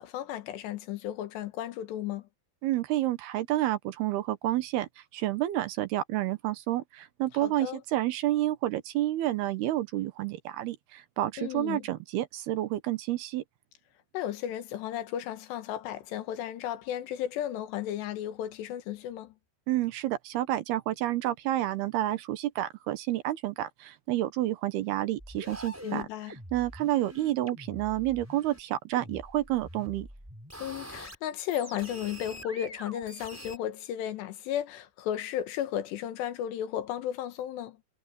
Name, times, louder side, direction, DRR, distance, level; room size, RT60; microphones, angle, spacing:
voice 1, 0.0-2.3 7.4-7.8 11.4-11.9 14.1-19.3 25.8-26.3 30.6-37.8, left 11 dB, 85° left, 3.5 m, -34 dB
voice 2, 2.6-13.4 19.7-26.1 26.5-30.1, right 14 dB, 75° right, 3.0 m, -29 dB
sound 1, 25.2-28.6 28.9-31.2 31.5-33.6, equal, 5° right, 4.7 m, -45 dB
omnidirectional pair, 4.8 m